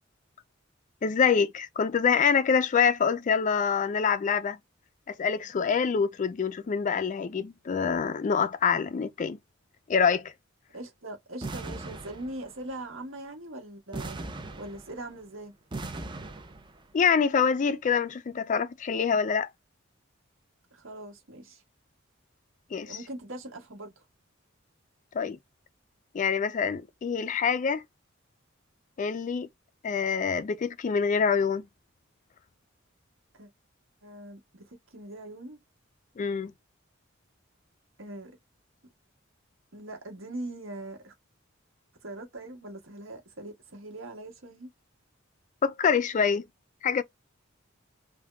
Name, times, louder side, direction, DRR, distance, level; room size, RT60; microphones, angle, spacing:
voice 1, 1.0-4.6 5.1-9.4 9.9-10.3 16.9-19.5 22.7-23.0 25.1-25.4 26.1-27.8 29.0-29.5 29.8-31.6 36.2-36.5 45.6-46.5 46.8-47.0, left 6 dB, 40° left, 0.3 m, -25 dB
voice 2, 10.7-14.2 14.5-15.5 20.7-21.6 22.9-24.0 33.3-33.5 34.0-35.6 38.0-38.3 39.7-41.1 42.0-44.7, right 1 dB, 75° right, 1.5 m, -41 dB
sound 1, 11.4-12.7 13.9-15.2 15.7-16.8, right 2 dB, 25° right, 0.6 m, -39 dB
3.5 x 2.5 x 2.2 m
head